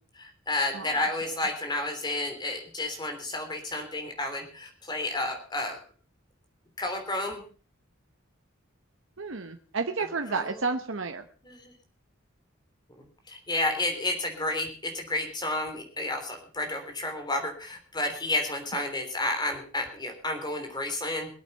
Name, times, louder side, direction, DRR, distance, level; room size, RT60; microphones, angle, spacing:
voice 1, 0.1-5.8 6.8-7.4 10.0-10.6 11.4-11.7 13.3-21.3, left 2 dB, 20° left, 5 dB, 3.3 m, -31 dB
voice 2, 0.7-1.0 9.2-11.2 18.7-18.8, right 4 dB, 65° right, 6 dB, 1.0 m, -31 dB
22.5 x 8.4 x 5.6 m, 0.41 s
head